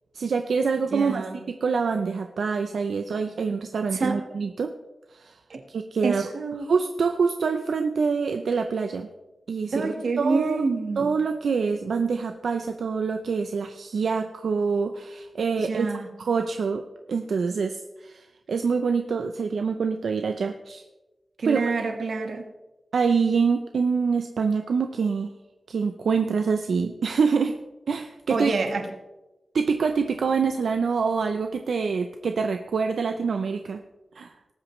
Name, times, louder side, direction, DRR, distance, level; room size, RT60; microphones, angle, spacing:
voice 1, 0.1-4.7 5.1-5.4 5.7-6.2 6.7-9.1 9.5-10.6 11.0-15.9 16.2-16.8 17.1-20.8 21.5-21.6 22.9-25.3 25.7-27.6 27.9-28.5 29.5-33.8 34.2-34.3, right 5 dB, 90° right, 6 dB, 0.5 m, -25 dB
voice 2, 0.9-1.4 3.9-4.2 5.5-5.6 6.0-6.6 9.7-11.1 15.6-16.1 21.4-22.5 28.3-28.9, right 4 dB, 70° right, 5 dB, 1.3 m, -27 dB
19.0 x 8.8 x 3.1 m, 1.1 s
wide cardioid pair, 170°, 0 cm